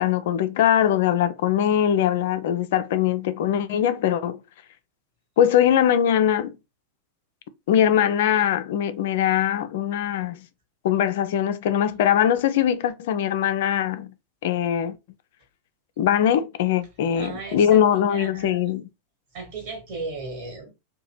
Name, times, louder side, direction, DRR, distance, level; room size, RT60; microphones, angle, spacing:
voice 1, 0.0-4.4 5.4-6.5 7.7-10.4 10.8-14.1 14.4-15.0 16.0-18.8, left 10 dB, 55° left, 0.3 m, -21 dB
voice 2, 17.2-17.8 18.1-18.6 19.3-20.7, right 3 dB, 45° right, 1.4 m, -35 dB
2.8 x 2.2 x 2.8 m
figure-of-eight pair, 90°, 0 cm